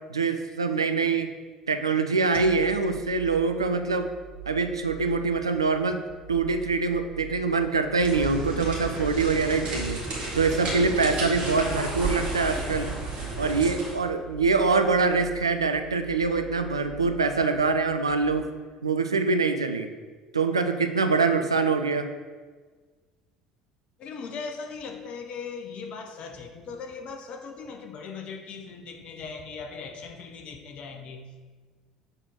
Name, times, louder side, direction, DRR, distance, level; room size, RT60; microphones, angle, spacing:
voice 1, 0.1-1.3 1.7-4.1 4.5-6.0 6.3-10.0 10.3-12.9 13.4-18.5 18.8-19.9 20.3-22.1, right 4 dB, 85° right, 7 dB, 0.4 m, -24 dB
sound 1, 2.3-18.3, right 8 dB, 65° right, 1.5 m, -44 dB
sound 2, 8.0-14.0, right 2 dB, 45° right, 1.8 m, -32 dB
voice 2, 24.0-31.4, left 5 dB, 45° left, 5 dB, 0.7 m, -39 dB
6.6 x 3.8 x 4.6 m, 1.4 s
figure-of-eight pair, 60°, 3 cm